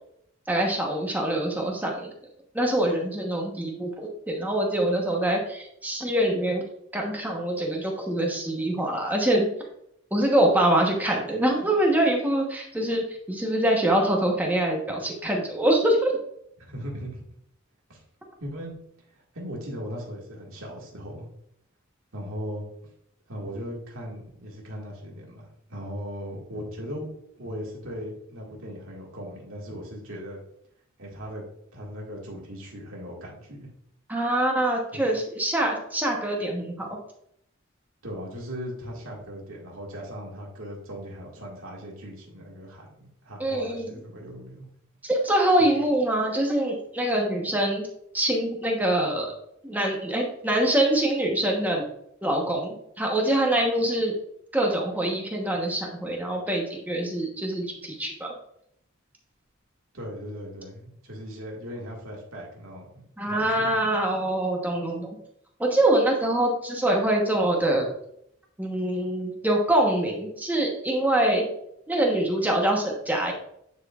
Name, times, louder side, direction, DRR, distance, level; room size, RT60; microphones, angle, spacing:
voice 1, 0.5-2.1 2.5-3.9 4.3-6.6 6.9-9.5 10.1-16.1 34.1-36.9 43.4-44.0 45.0-47.9 48.1-49.3 49.6-51.8 52.2-54.1 54.5-58.3 63.2-65.2 65.6-67.9 68.6-71.4 71.9-73.3, right 1 dB, 10° right, 0 dB, 1.1 m, -24 dB
voice 2, 16.6-17.2 17.9-18.0 18.4-18.8 19.1-21.3 22.1-22.6 23.3-27.1 27.4-30.4 31.0-31.4 31.7-33.7 34.9-35.0 38.0-44.6 45.6-45.7 59.9-63.7, equal, 85° right, -2 dB, 1.9 m, -38 dB
9.6 x 4.3 x 2.4 m, 0.73 s
head